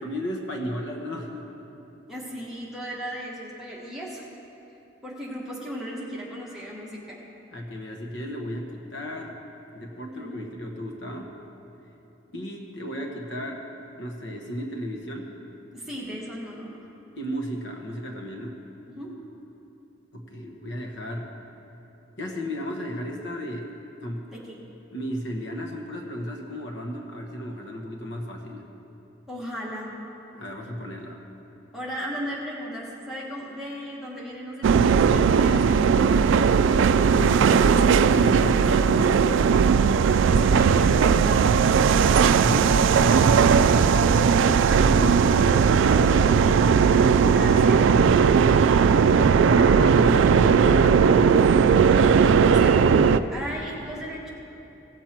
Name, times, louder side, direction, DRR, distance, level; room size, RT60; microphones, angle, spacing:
voice 1, 0.0-1.5 7.5-9.4 9.7-11.3 12.3-13.7 14.0-15.3 17.2-18.6 20.1-21.3 22.2-23.7 24.0-24.3 24.9-28.7 30.4-31.2 37.1-37.8 38.1-39.5 42.4-43.0 44.9-45.5 49.5-53.1, equal, 70° left, 1 dB, 1.1 m, -34 dB
voice 2, 2.1-4.3 5.0-7.2 10.1-10.5 15.7-16.8 18.9-19.1 24.2-24.6 29.3-29.9 31.7-35.8 38.4-38.8 40.2-41.8 43.9-44.4 45.8-46.3 47.1-47.9 52.5-52.8 53.3-54.3, equal, ahead, -6 dB, 1.5 m, -36 dB
sound 1, 34.6-53.2, right 6 dB, 75° right, 0.3 m, -18 dB
16.5 x 7.4 x 4.4 m, 3.0 s
head